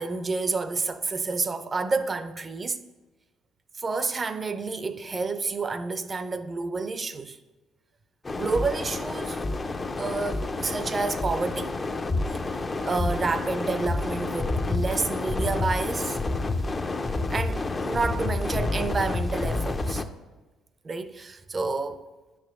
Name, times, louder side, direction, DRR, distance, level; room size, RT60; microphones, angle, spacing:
voice 1, 0.0-2.8 3.8-7.4 8.3-9.4 10.0-11.8 12.5-12.6 12.8-16.2 17.3-20.0 20.8-22.0, right 3 dB, 35° right, 0.5 m, -29 dB
sound 1, 8.3-20.1, left 2 dB, 30° left, 0.5 m, -29 dB
9.9 x 4.7 x 3.6 m
supercardioid pair, 65°, 0 cm